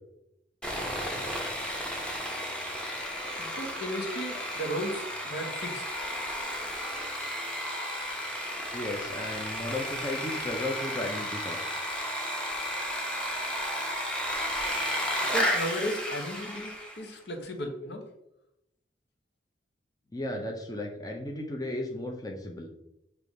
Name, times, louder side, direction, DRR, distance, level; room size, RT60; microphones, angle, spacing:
Sawing, 0.6-17.0, equal, 5° left, 1.1 m, -33 dB
voice 1, 3.4-6.0 15.3-18.1, equal, 65° left, 3 dB, 1.2 m, -35 dB
voice 2, 8.7-11.6 20.1-22.7, left 1 dB, 20° left, 1 dB, 0.7 m, -35 dB
6.7 x 3.3 x 5.3 m, 0.83 s
head